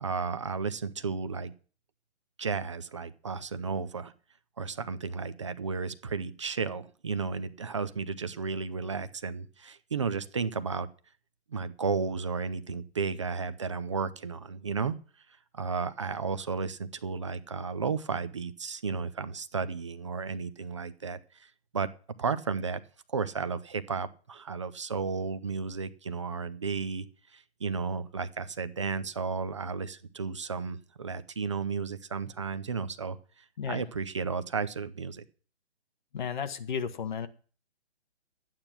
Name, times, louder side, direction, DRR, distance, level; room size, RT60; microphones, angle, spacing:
voice 1, 0.0-1.5 2.4-4.1 4.6-10.9 11.5-15.0 15.5-21.9 22.2-22.8 23.1-27.1 27.3-33.2 33.7-35.2, right 5 dB, 25° right, 12 dB, 0.5 m, -33 dB
voice 2, 36.1-37.3, left 7 dB, 45° left, 10 dB, 1.2 m, -33 dB
11.5 x 9.0 x 5.9 m, 0.40 s
hypercardioid pair, 165°, 35 cm